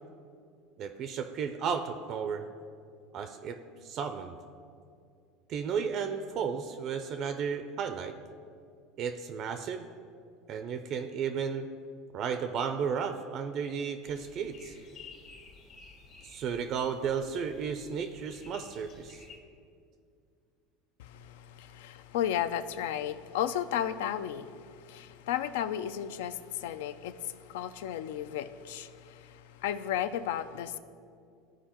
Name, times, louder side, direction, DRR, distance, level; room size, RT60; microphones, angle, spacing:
voice 1, 0.8-2.5 3.1-4.4 5.5-8.1 9.0-9.9 10.5-11.7 12.1-14.7 16.2-19.2, right 6 dB, 45° right, 8 dB, 0.4 m, -34 dB
sound 1, 14.0-19.4, left 4 dB, 50° left, 1.8 m, -53 dB
voice 2, 21.0-30.8, left 10 dB, 85° left, 13 dB, 0.3 m, -34 dB
13.0 x 4.6 x 2.9 m, 2.4 s
supercardioid pair, 135°, 0 cm